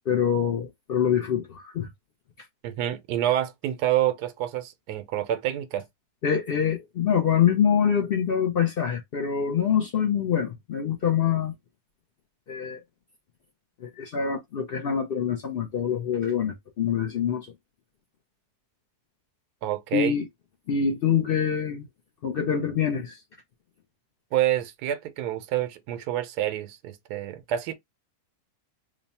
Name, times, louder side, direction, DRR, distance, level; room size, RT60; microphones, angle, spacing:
voice 1, 0.1-1.9 6.2-11.5 12.5-12.8 13.8-17.5 19.9-20.3 20.7-21.9 22.2-23.2, left 8 dB, 85° left, 0.5 m, -25 dB
voice 2, 2.6-5.8 19.6-20.1 24.3-27.7, right 12 dB, 85° right, 1.2 m, -27 dB
3.1 x 2.2 x 4.0 m
omnidirectional pair, 1.7 m